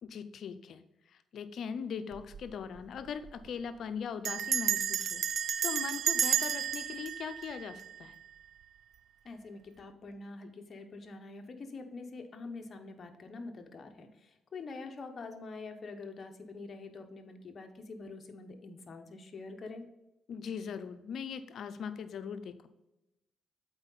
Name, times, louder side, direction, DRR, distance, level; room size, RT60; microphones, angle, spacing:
voice 1, 0.0-8.2 20.3-22.7, left 7 dB, 65° left, 11 dB, 0.6 m, -40 dB
Bell, 2.1-2.5 2.8-2.9 3.1-3.5 4.2-8.3, right 9 dB, 60° right, 0.4 m, -32 dB
voice 2, 9.2-19.9, left 3 dB, 40° left, 5 dB, 1.0 m, -45 dB
7.9 x 4.5 x 4.0 m, 0.94 s
cardioid pair, 90°, 0 cm